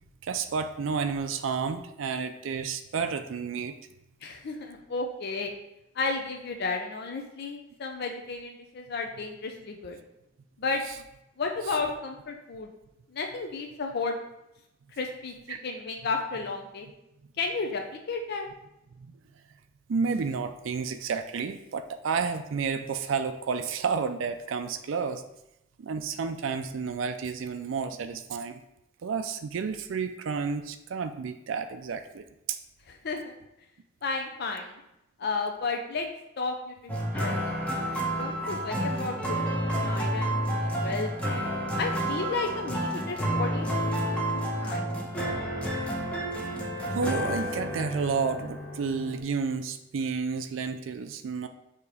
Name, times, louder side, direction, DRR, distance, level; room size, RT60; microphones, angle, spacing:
voice 1, 0.2-3.8 15.5-15.6 19.0-19.1 19.9-25.2 25.8-28.6 29.0-32.6 46.9-51.5, right 5 dB, 75° right, 8 dB, 0.4 m, -31 dB
voice 2, 4.2-5.5 5.9-10.0 10.6-10.8 11.4-12.7 13.1-14.2 14.9-15.3 15.6-16.9 17.4-17.8 18.1-18.5 33.0-33.3 34.0-34.7 35.2-36.1 36.4-37.3 37.6-37.7 38.2-41.1 41.8-44.9, left 3 dB, 55° left, 3 dB, 0.5 m, -33 dB
sound 1, 36.9-49.2, equal, 5° left, 1.0 m, -30 dB
7.0 x 2.9 x 4.8 m, 0.87 s
head